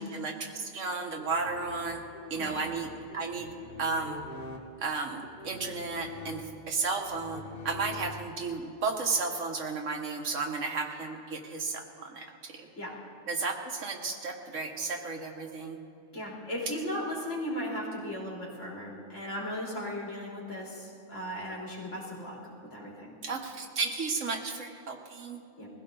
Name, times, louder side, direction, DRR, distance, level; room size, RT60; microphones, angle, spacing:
voice 1, 0.0-2.0 2.3-3.5 3.8-4.2 4.8-12.7 13.3-15.8 23.2-25.4, right 4 dB, 85° right, 3 dB, 1.7 m, -33 dB
sound 1, 1.2-8.6, left 3 dB, 50° left, 1.6 m, -44 dB
voice 2, 16.1-23.1 25.6-25.7, equal, 80° left, -6 dB, 4.0 m, -37 dB
21.5 x 16.0 x 3.9 m, 2.6 s
omnidirectional pair, 1.3 m